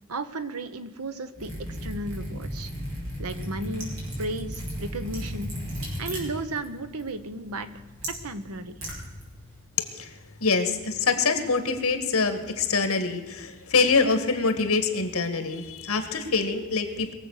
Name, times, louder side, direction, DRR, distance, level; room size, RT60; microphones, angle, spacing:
voice 1, 0.1-1.5 1.8-2.7 3.2-3.9 4.2-5.5 6.0-7.7 8.2-8.7, right 2 dB, 85° right, 10 dB, 1.1 m, -34 dB
Liquid, 1.3-9.6, equal, 60° right, 5.0 m, -36 dB
voice 2, 9.8-17.1, left 4 dB, 80° left, 8 dB, 1.8 m, -25 dB
21.0 x 7.7 x 6.6 m, 1.3 s
head